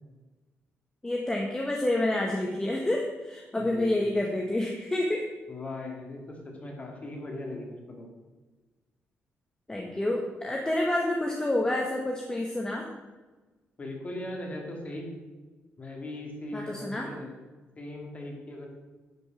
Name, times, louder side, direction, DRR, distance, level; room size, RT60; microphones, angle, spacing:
voice 1, 1.0-5.3 9.7-12.8 16.5-17.1, left 1 dB, 15° left, -1 dB, 1.3 m, -28 dB
voice 2, 3.6-4.1 5.5-8.1 13.8-15.1 15.8-17.3 17.8-18.8, left 1 dB, 30° left, 0 dB, 2.8 m, -39 dB
11.0 x 5.3 x 7.3 m, 1.2 s
cardioid pair, 120°, 5 cm